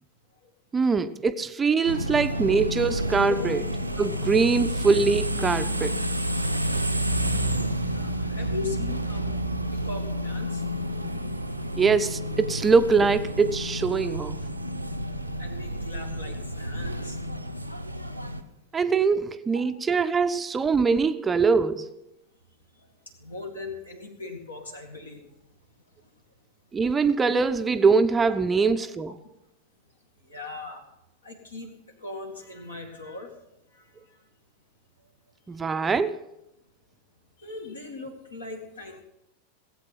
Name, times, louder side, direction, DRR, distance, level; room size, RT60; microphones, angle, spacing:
voice 1, 0.7-3.6 4.0-6.0 11.8-14.4 18.7-21.9 26.7-29.1 35.5-36.2, right 4 dB, 15° right, 0.5 m, -23 dB
sound 1, 1.9-18.4, equal, 90° right, 0.7 m, -30 dB
voice 2, 7.8-9.3 9.7-10.6 15.4-17.2 19.5-19.6 22.7-22.9 23.2-25.3 28.6-28.7 30.3-30.8 31.2-31.7 32.0-33.3 33.7-33.9 37.4-39.0, left 3 dB, 75° left, 2.1 m, -39 dB
17.5 x 8.2 x 5.8 m
figure-of-eight pair, 90°, 0 cm